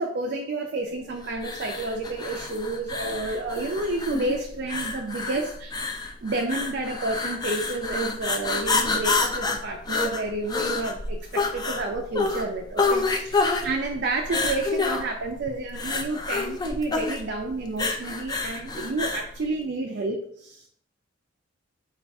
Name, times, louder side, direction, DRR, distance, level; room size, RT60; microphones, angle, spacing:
voice 1, 0.0-20.7, right 2 dB, 55° right, 2 dB, 0.4 m, -30 dB
sound 1, 1.4-19.3, left 3 dB, 20° left, 0.3 m, -28 dB
5.4 x 2.3 x 3.4 m, 0.65 s
head